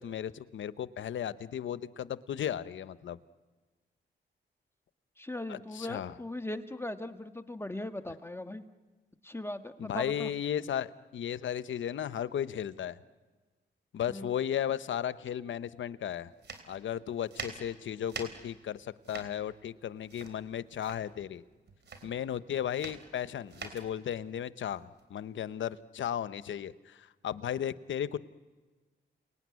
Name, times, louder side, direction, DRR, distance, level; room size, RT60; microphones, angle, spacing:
voice 1, 0.0-3.2 5.5-6.2 9.8-13.0 13.9-16.3 16.6-21.4 22.0-28.2, left 9 dB, 85° left, 15 dB, 0.8 m, -35 dB
voice 2, 5.2-8.6 9.2-10.3 14.1-14.3, left 1 dB, 10° left, 9 dB, 1.4 m, -39 dB
sound 1, 16.4-25.6, right 5 dB, 65° right, 3.7 m, -46 dB
30.0 x 19.5 x 9.5 m, 1.3 s
cardioid pair, 70°, 19 cm